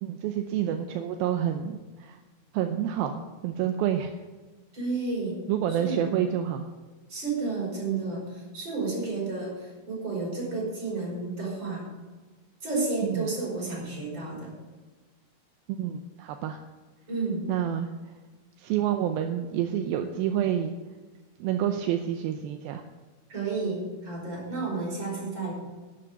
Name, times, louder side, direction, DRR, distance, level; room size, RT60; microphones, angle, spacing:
voice 1, 0.0-2.2 2.5-4.1 5.5-6.7 13.1-13.3 15.8-16.6 17.5-17.9 18.6-20.7 21.4-22.8, right 10 dB, 80° right, 6 dB, 2.5 m, -28 dB
voice 2, 4.7-5.4 5.8-6.0 7.1-11.8 12.6-14.5 17.1-17.5 23.3-25.5, right 3 dB, 30° right, -4 dB, 5.7 m, -31 dB
11.5 x 8.6 x 6.8 m, 1.3 s
omnidirectional pair, 4.3 m